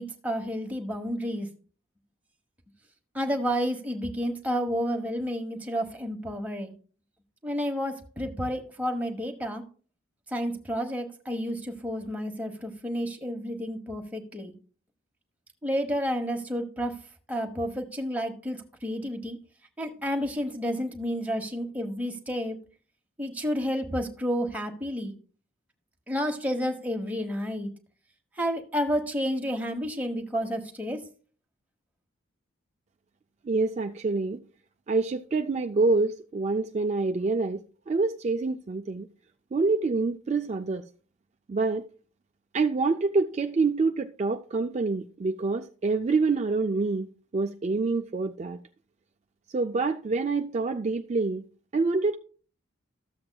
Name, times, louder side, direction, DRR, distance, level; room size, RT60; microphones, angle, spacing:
voice 1, 0.0-1.5 3.1-6.7 7.4-9.6 10.3-14.5 15.6-16.9 17.3-19.4 19.8-22.6 23.2-25.1 26.1-27.7 28.4-31.0, equal, 5° right, 1.1 m, -30 dB
voice 2, 33.4-34.4 34.9-37.6 37.9-39.1 39.5-40.8 41.5-41.8 42.5-48.6 49.5-51.4 51.7-52.2, right 3 dB, 35° right, 0.3 m, -26 dB
13.5 x 7.7 x 2.2 m
head